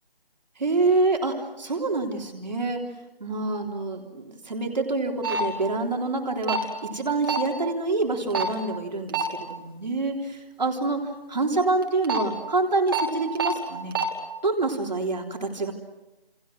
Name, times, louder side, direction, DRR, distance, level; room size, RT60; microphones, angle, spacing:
voice 1, 0.6-2.9 3.2-11.0 11.3-14.0 14.4-15.7, right 3 dB, 45° right, 2 dB, 3.5 m, -26 dB
sound 1, 5.2-5.4 6.4-6.6 7.3-7.5 8.3-8.5 9.1-9.3 11.8-12.2 12.9-13.0 13.4-13.5 13.9-14.0, right 6 dB, 25° right, 2.9 m, -25 dB
29.5 x 29.0 x 6.2 m, 0.99 s
figure-of-eight pair, 170°, 30 cm